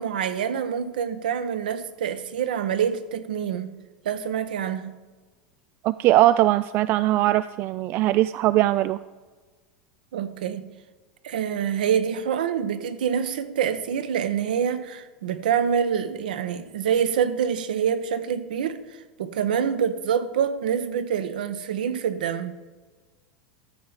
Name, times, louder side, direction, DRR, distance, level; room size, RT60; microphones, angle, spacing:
voice 1, 0.0-3.7 4.0-5.0 10.1-10.7 11.2-22.5, right 8 dB, 70° right, 1.0 m, -26 dB
voice 2, 5.8-9.0, right 15 dB, 45° right, 0.3 m, -20 dB
13.5 x 7.6 x 4.0 m
hypercardioid pair, 85°, 5 cm